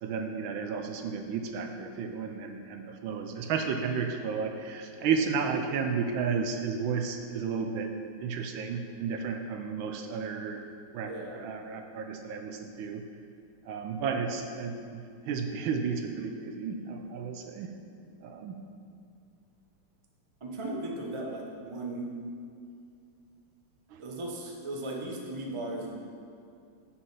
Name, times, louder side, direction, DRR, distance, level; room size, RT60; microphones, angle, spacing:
voice 1, 0.0-7.9 8.2-10.6 10.9-13.0 13.7-17.7 18.2-18.6 23.9-24.0, right 5 dB, 75° right, 5 dB, 1.3 m, -33 dB
voice 2, 11.0-11.4 20.4-22.1 24.0-25.9, right 1 dB, 35° right, -1 dB, 0.4 m, -37 dB
7.6 x 6.5 x 5.5 m, 2.4 s
omnidirectional pair, 2.4 m